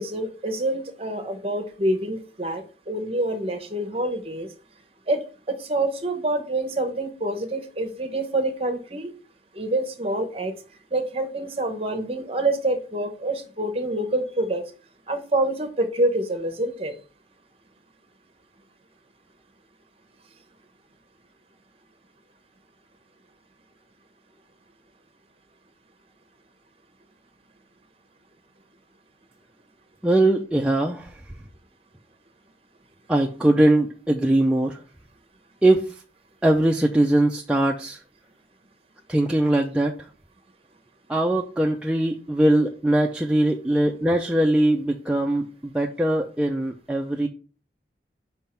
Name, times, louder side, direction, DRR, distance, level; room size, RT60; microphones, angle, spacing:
voice 1, 0.0-4.5 5.1-9.1 9.5-10.5 10.9-14.6 15.1-16.9, right 1 dB, 35° right, 7 dB, 0.9 m, -26 dB
voice 2, 30.0-31.2 33.1-34.8 35.6-36.0 36.4-38.0 39.1-40.1 41.1-47.3, right 1 dB, 5° right, 0 dB, 0.4 m, -21 dB
5.1 x 3.6 x 5.7 m, 0.38 s
head